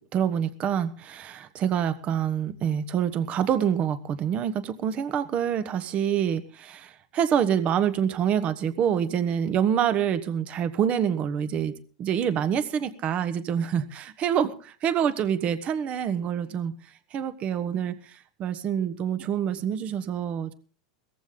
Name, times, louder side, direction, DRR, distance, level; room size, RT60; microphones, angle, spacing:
voice 1, 0.1-16.7 17.1-20.5, right 8 dB, 40° right, 12 dB, 1.3 m, -26 dB
17.5 x 14.5 x 3.9 m, 0.40 s
supercardioid pair, 115°, 3 cm